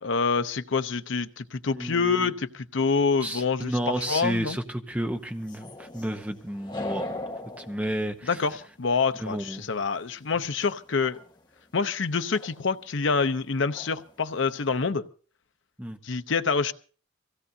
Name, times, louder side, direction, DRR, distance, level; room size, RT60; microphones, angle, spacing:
voice 1, 0.0-3.7 4.1-4.6 8.2-11.2 11.7-15.0 16.0-16.7, left 4 dB, 75° left, 11 dB, 0.7 m, -26 dB
voice 2, 1.7-2.3 3.2-7.0 7.6-8.4 9.2-9.7 15.8-16.0, right 1 dB, 10° right, 6 dB, 0.8 m, -31 dB
sound 1, 5.4-8.9 10.6-10.7 10.9-11.4 12.3-12.6 13.1-13.2 13.6-14.1 14.4-14.9, left 2 dB, 20° left, 1.2 m, -39 dB
24.0 x 16.5 x 2.7 m, 0.40 s
head